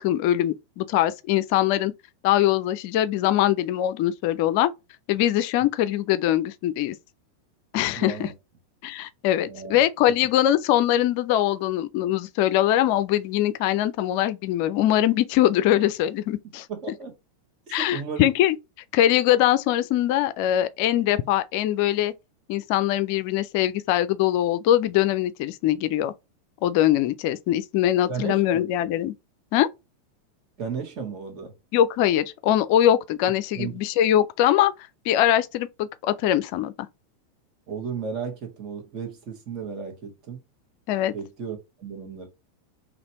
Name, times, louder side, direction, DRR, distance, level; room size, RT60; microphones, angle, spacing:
voice 1, 0.0-1.9 2.2-4.7 5.1-7.0 7.7-8.3 8.8-16.7 17.7-18.6 18.9-22.1 22.5-26.1 26.6-29.1 29.5-29.7 31.7-34.7 35.1-36.7 40.9-41.1, left 12 dB, 50° left, 0.4 m, -22 dB
voice 2, 8.0-8.3 9.5-9.8 16.7-17.1 17.7-18.3 28.1-28.9 30.6-31.5 33.5-33.8 37.7-40.4 41.1-42.3, right 6 dB, 40° right, 1.7 m, -34 dB
4.1 x 2.9 x 2.9 m
figure-of-eight pair, 90°, 0 cm